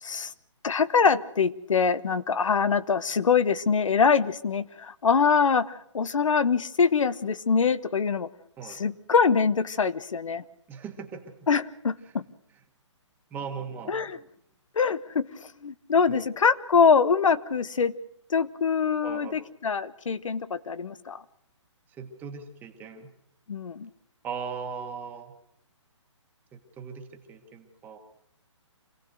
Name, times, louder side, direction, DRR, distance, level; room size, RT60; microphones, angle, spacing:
voice 1, 0.0-0.3 0.6-8.3 8.6-10.4 11.5-12.2 13.9-14.2 14.7-17.9 18.3-21.2 23.5-23.9, left 5 dB, 85° left, 16 dB, 1.1 m, -24 dB
voice 2, 10.7-11.2 13.3-14.2 16.1-16.2 19.0-19.4 22.0-23.1 24.2-25.3 26.5-28.0, right 6 dB, 10° right, 3 dB, 1.5 m, -39 dB
26.0 x 17.0 x 6.5 m, 0.71 s
hypercardioid pair, 160°, 16 cm